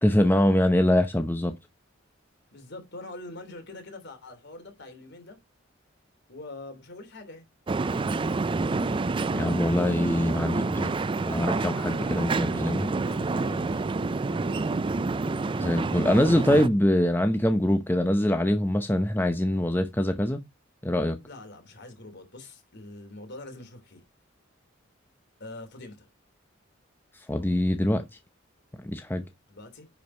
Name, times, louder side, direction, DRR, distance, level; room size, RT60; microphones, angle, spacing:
voice 1, 0.0-1.6 9.3-10.9 11.3-12.9 15.5-20.4 20.8-21.2 27.3-28.0 28.8-29.2, left 1 dB, 10° left, 0.7 m, -24 dB
voice 2, 2.5-5.4 6.3-7.4 12.8-14.8 21.2-24.0 25.4-26.1 29.5-29.9, left 2 dB, 60° left, 3.1 m, -44 dB
sound 1, 7.7-16.7, right 3 dB, 25° right, 0.4 m, -28 dB
10.5 x 5.0 x 4.4 m
head